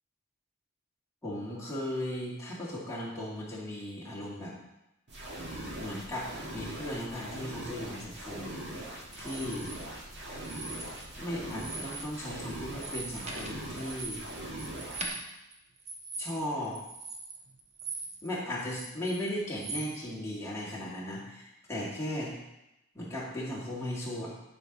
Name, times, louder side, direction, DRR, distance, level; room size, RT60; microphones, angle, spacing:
voice 1, 1.2-4.5 5.8-8.6 9.2-9.7 11.2-14.2 16.2-16.8 18.2-22.3 22.9-24.3, left 1 dB, 15° left, -7 dB, 2.3 m, -37 dB
sound 1, 5.1-15.1, right 1 dB, 50° right, 2.0 m, -41 dB
sound 2, 9.1-9.8 10.4-11.2 11.5-12.1 12.4-18.3 18.6-19.9, right 3 dB, 30° right, 1.0 m, -41 dB
11.0 x 4.5 x 5.4 m, 0.91 s
head